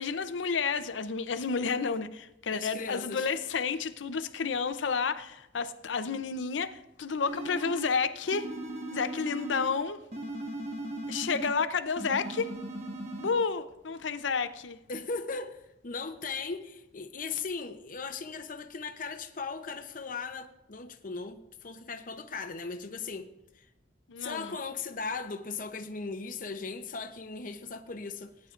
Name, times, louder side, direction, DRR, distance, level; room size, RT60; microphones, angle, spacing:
voice 1, 0.0-8.5 8.9-10.0 11.1-12.5 13.2-14.8 24.1-24.5, left 5 dB, 85° left, 0.6 m, -31 dB
voice 2, 2.5-3.3 14.9-23.3 23.6-23.7 24.2-28.3, left 4 dB, 50° left, 0.7 m, -38 dB
sound 1, 7.2-7.9 8.3-9.8 10.1-11.6 12.0-13.3, right 1 dB, 35° right, 1.4 m, -38 dB
18.5 x 9.5 x 2.5 m
head